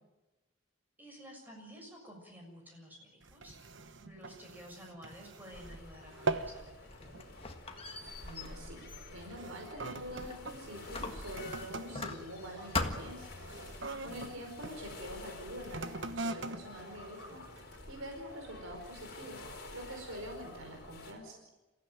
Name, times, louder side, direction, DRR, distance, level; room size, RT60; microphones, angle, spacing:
voice 1, 1.0-7.2 14.0-14.3, equal, 10° right, 0 dB, 6.7 m, -52 dB
sound 1, 3.2-5.8 6.1-6.6 7.0-7.3 8.0-8.3 9.0-14.8 15.6-17.9 18.5-18.6, right 3 dB, 55° right, 1.1 m, -42 dB
sound 2, 5.5-21.1, left 2 dB, 45° left, 4.6 m, -50 dB
Squeak, 6.7-10.5 10.9-12.4 12.7-13.3, left 3 dB, 25° left, 1.6 m, -40 dB
voice 2, 8.2-13.4 14.0-17.4 17.9-19.4 19.7-21.4, equal, 70° right, 2 dB, 4.9 m, -45 dB
27.5 x 15.5 x 9.1 m, 1.1 s
head